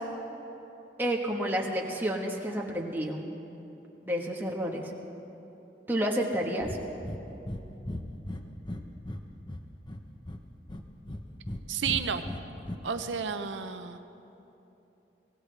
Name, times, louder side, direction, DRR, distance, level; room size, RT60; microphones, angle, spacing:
voice 1, 1.0-3.2 4.0-4.8 5.9-6.7, equal, 10° right, -1 dB, 1.3 m, -30 dB
Breathing, 6.6-6.8 7.0-7.2 7.5-7.6 7.9-9.2 9.5-10.4 10.7-11.6 11.9-12.8, left 1 dB, 25° left, 0.8 m, -36 dB
voice 2, 11.7-12.2 12.8-14.0, right 6 dB, 90° right, 8 dB, 0.7 m, -31 dB
24.0 x 17.0 x 3.4 m, 3.0 s
head